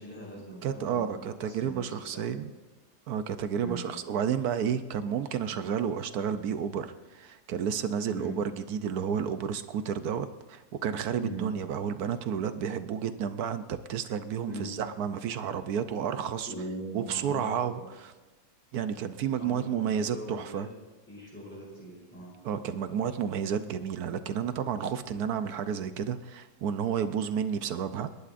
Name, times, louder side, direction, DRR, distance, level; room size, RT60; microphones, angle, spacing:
voice 1, 0.0-2.4 3.6-3.8 8.1-8.3 11.2-11.5 14.5-14.7 16.5-17.9 19.4-20.7 21.1-22.3, right 1 dB, 5° left, -6 dB, 5.9 m, -41 dB
voice 2, 0.6-2.5 3.1-8.4 8.7-16.5 16.9-18.1 18.7-20.7 22.4-28.1, right 8 dB, 70° right, 10 dB, 1.2 m, -31 dB
29.5 x 11.0 x 2.6 m, 1.2 s
omnidirectional pair, 1.7 m